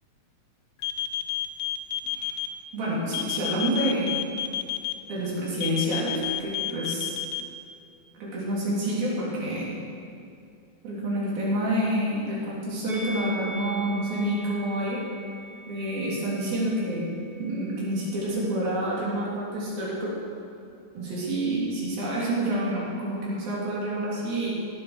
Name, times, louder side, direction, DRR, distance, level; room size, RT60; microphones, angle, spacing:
sound 1, 0.8-2.5 3.1-4.9 5.6-7.4, left 14 dB, 80° left, 2.5 m, -29 dB
voice 1, 2.7-4.2 5.1-7.2 8.1-9.7 10.8-15.0 15.7-17.1 17.4-20.2 20.9-24.5, right 1 dB, 75° right, -6 dB, 5.1 m, -28 dB
Musical instrument, 12.9-18.1 18.4-18.6, equal, 50° right, 4.6 m, -41 dB
17.5 x 7.6 x 6.6 m, 2.5 s
omnidirectional pair, 4.3 m